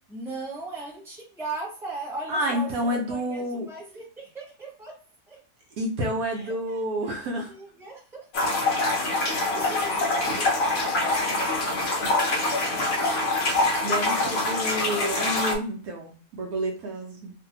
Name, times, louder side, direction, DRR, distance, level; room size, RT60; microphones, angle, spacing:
voice 1, 0.1-5.0 5.3-5.4 6.2-7.2 7.5-8.3 9.0-11.3, right 3 dB, ahead, -4 dB, 1.0 m, -39 dB
voice 2, 2.3-3.7 5.8-7.5 13.8-17.3, equal, 70° right, 1 dB, 1.0 m, -29 dB
sound 1, 8.3-15.5, left 2 dB, 60° left, 0.6 m, -25 dB
2.6 x 2.5 x 2.8 m, 0.41 s
omnidirectional pair, 1.7 m